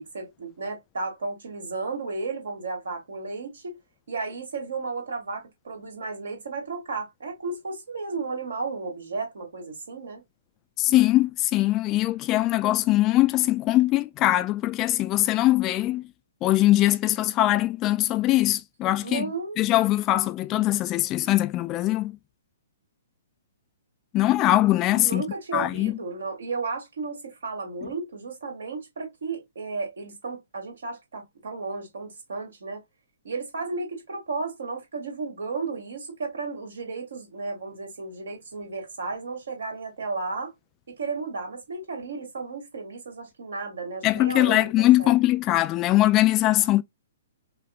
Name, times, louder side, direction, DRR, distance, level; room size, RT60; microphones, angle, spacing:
voice 1, 0.0-3.8 4.1-10.2 19.0-19.6 24.9-32.8 33.2-40.5 40.9-45.1, right 4 dB, 60° right, 2.3 m, -33 dB
voice 2, 10.8-16.1 16.4-19.3 19.6-22.2 24.1-25.2 25.5-25.9 44.0-46.8, left 15 dB, 25° left, 0.3 m, -21 dB
5.5 x 3.0 x 2.4 m
figure-of-eight pair, 120°, 0 cm